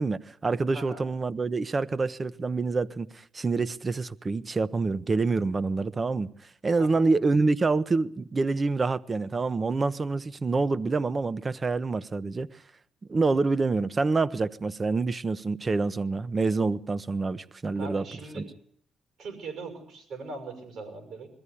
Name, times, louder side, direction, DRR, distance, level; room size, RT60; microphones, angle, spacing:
voice 1, 0.0-6.3 6.6-12.5 13.1-18.0 18.3-18.5, right 3 dB, 30° right, 0.8 m, -27 dB
voice 2, 0.7-1.0 6.8-7.0 17.8-18.4 19.2-21.3, right 3 dB, 75° right, 6.1 m, -40 dB
21.5 x 14.0 x 9.9 m
cardioid pair, 90°, 0 cm